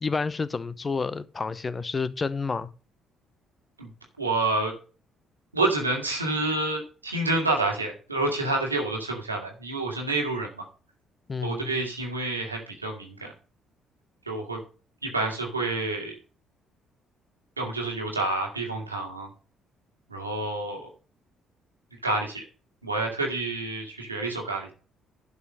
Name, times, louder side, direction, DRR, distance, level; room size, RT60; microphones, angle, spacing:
voice 1, 0.0-2.7 11.3-11.7, left 4 dB, 30° left, 0.8 m, -29 dB
voice 2, 4.2-4.7 5.5-10.7 11.4-13.3 14.3-14.6 15.0-16.2 17.6-19.3 20.1-20.9 22.0-22.4 22.8-24.7, right 2 dB, 90° right, 2.0 m, -28 dB
11.0 x 4.9 x 6.4 m
figure-of-eight pair, 45°, 0 cm